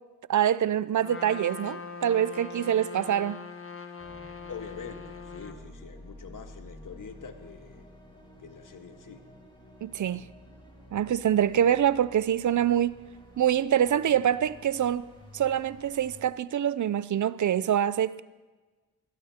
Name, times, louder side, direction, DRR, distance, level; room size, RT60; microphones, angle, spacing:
voice 1, 0.3-3.4 9.8-10.2 10.9-13.0 13.4-15.1 15.3-18.2, right 10 dB, 55° right, 0.5 m, -25 dB
Trumpet, 1.0-5.6, left 5 dB, 35° left, 1.5 m, -41 dB
sound 1, 4.0-16.2, equal, 15° left, 5.4 m, -51 dB
voice 2, 4.5-7.9 8.4-9.2, left 6 dB, 60° left, 1.5 m, -44 dB
23.0 x 16.5 x 2.9 m
supercardioid pair, 45°, 36 cm